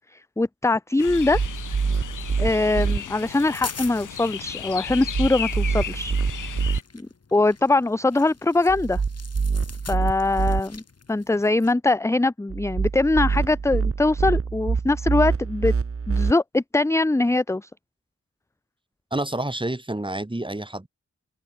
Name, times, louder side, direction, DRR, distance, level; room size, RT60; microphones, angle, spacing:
voice 1, 0.4-1.4 2.4-6.4 7.3-9.0 9.9-10.8 11.1-15.7 16.1-17.7, left 2 dB, 10° left, 0.6 m, -22 dB
sound 1, 1.0-6.8, left 9 dB, 80° left, 1.2 m, -35 dB
sound 2, 1.1-3.0 4.9-6.8 8.7-10.6 12.5-16.3, right 5 dB, 45° right, 1.6 m, -25 dB
sound 3, 3.2-11.7, left 4 dB, 55° left, 4.2 m, -44 dB
voice 2, 19.1-20.9, right 1 dB, 15° right, 3.3 m, -28 dB
cardioid pair, 50°, 31 cm